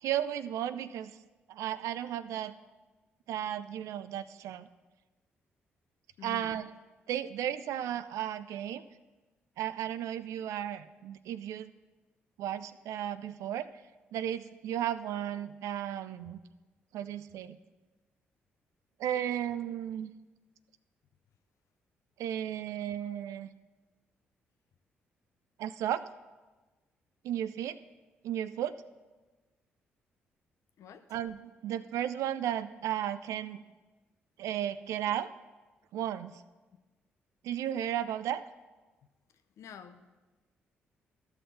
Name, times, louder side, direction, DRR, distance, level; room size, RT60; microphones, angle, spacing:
voice 1, 0.0-1.1 1.5-2.5 3.3-4.7 6.2-6.7 7.1-8.8 9.6-11.7 12.4-13.7 14.1-16.4 16.9-17.6 19.0-20.1 22.2-23.5 25.6-26.0 27.2-27.8 28.2-28.8 31.1-33.6 34.4-35.3 35.9-36.4 37.4-38.4, right 11 dB, 70° right, 14 dB, 0.4 m, -34 dB
voice 2, 6.2-6.6 30.8-31.1 39.6-40.0, left 8 dB, 65° left, 9 dB, 0.6 m, -47 dB
13.0 x 5.9 x 4.1 m, 1.2 s
hypercardioid pair, 45°, 6 cm